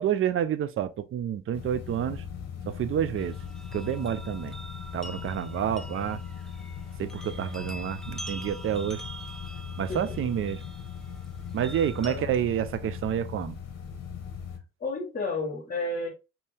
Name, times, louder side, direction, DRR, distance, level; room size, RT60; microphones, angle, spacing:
voice 1, 0.0-2.2 2.7-3.4 3.7-4.5 4.9-6.2 7.0-9.0 9.8-10.6 11.5-13.5, right 10 dB, 45° right, 0.4 m, -29 dB
sound 1, 1.5-14.6, left 7 dB, 55° left, 0.9 m, -39 dB
sound 2, 3.2-12.2, right 2 dB, ahead, 0.6 m, -45 dB
voice 2, 14.8-16.1, left 3 dB, 35° left, 1.3 m, -32 dB
2.7 x 2.7 x 3.3 m
cardioid pair, 90°, 30 cm